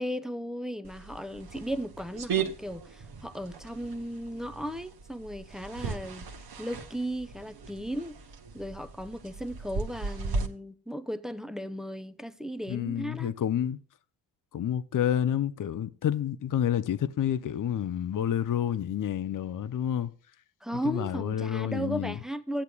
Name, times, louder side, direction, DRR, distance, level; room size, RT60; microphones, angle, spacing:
voice 1, 0.0-6.3 6.6-8.1 8.5-13.3 20.6-22.6, equal, ahead, 0.6 m, -36 dB
sound 1, 0.8-10.5, right 5 dB, 50° right, 1.2 m, -37 dB
voice 2, 12.7-13.8 14.5-20.1 20.8-22.2, left 10 dB, 45° left, 0.6 m, -29 dB
14.0 x 8.0 x 2.3 m
supercardioid pair, 45°, 46 cm